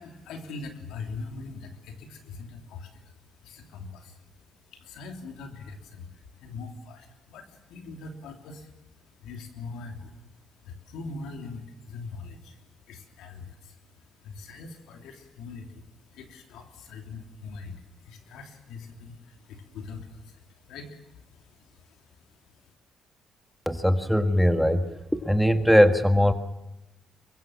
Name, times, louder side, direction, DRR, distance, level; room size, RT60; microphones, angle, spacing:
voice 1, 0.0-22.7, left 4 dB, 90° left, 3 dB, 3.2 m, -43 dB
voice 2, 23.7-24.9 25.2-26.3, equal, ahead, 7 dB, 1.7 m, -20 dB
23.5 x 22.0 x 7.4 m, 0.93 s
cardioid pair, 90°, 0 cm